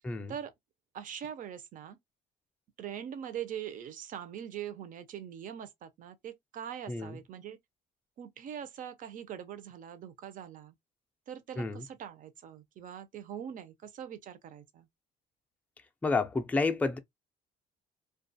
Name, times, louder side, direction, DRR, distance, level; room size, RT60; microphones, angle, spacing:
voice 1, 0.9-2.0 2.8-7.6 8.2-10.7 11.3-14.9, right 9 dB, 50° right, 0.5 m, -42 dB
voice 2, 16.0-17.0, left 3 dB, 10° left, 0.4 m, -30 dB
2.4 x 2.3 x 2.6 m
cardioid pair, 110°, 17 cm